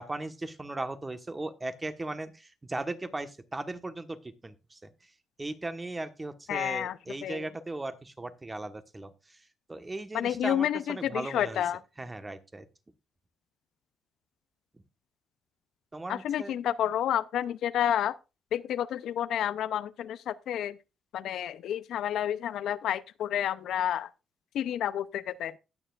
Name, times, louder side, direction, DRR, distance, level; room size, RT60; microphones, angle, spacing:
voice 1, 0.0-5.1 5.4-11.6 12.0-12.7 15.9-16.6, right 2 dB, 20° right, 1.3 m, -38 dB
voice 2, 6.5-7.0 7.2-7.5 10.1-11.8 16.1-18.2 18.5-20.8 21.1-24.1 24.5-25.5, left 10 dB, 75° left, 0.6 m, -30 dB
19.0 x 6.8 x 2.5 m
cardioid pair, 90°, 0 cm